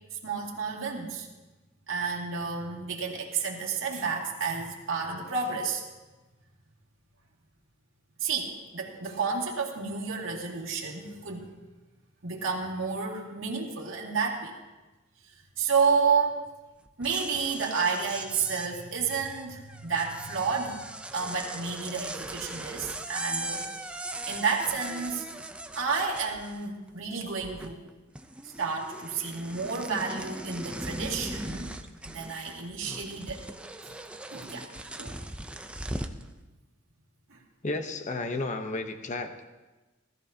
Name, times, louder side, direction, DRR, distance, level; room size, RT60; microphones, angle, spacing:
voice 1, 0.1-1.3 1.9-5.8 8.2-11.5 12.2-14.5 15.6-16.4 17.0-20.8 21.1-24.0 24.3-25.3 25.8-27.9 28.6-31.7 32.0-33.4 33.8-34.0 34.3-34.7 35.0-35.2 37.3-37.4, right 5 dB, 75° right, -2 dB, 2.3 m, -30 dB
sound 1, 16.9-26.9 27.2-27.9 28.1-36.2, right 1 dB, 5° right, 0.5 m, -39 dB
voice 2, 37.6-39.4, left 2 dB, 40° left, 6 dB, 0.9 m, -32 dB
19.0 x 13.5 x 2.8 m, 1.2 s
head